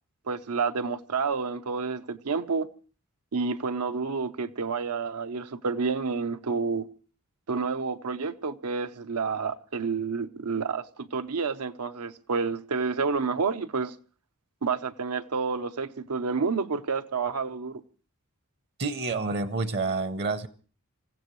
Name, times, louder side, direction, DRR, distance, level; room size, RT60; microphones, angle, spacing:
voice 1, 0.3-2.7 3.3-6.9 7.5-14.0 14.6-17.8, right 5 dB, 85° right, 0.7 m, -29 dB
voice 2, 18.8-20.5, right 3 dB, 50° right, 0.8 m, -28 dB
27.0 x 15.5 x 3.1 m
head